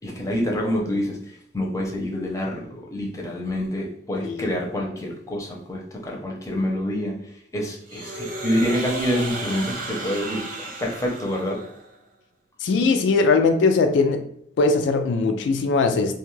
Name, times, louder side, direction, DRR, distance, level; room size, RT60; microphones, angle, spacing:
voice 1, 0.0-1.2 1.5-7.1 7.5-11.6, equal, 20° left, -2 dB, 0.6 m, -27 dB
sound 1, 7.9-11.9, right 2 dB, 50° right, 0.6 m, -34 dB
voice 2, 12.6-14.2 14.6-16.1, left 4 dB, 90° left, 6 dB, 0.3 m, -20 dB
2.5 x 2.3 x 3.1 m, 0.68 s
head